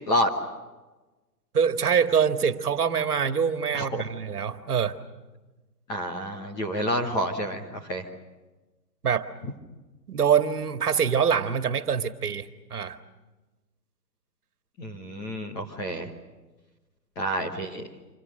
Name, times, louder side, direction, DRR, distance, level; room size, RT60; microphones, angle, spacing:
voice 1, 1.5-5.0 9.0-9.3 10.1-13.0, right 7 dB, 65° right, 10 dB, 1.9 m, -24 dB
voice 2, 3.7-4.1 5.9-8.1 14.8-16.1 17.2-17.8, equal, 10° left, 1 dB, 1.0 m, -29 dB
28.0 x 26.0 x 6.5 m, 1.2 s
hypercardioid pair, 160°, 49 cm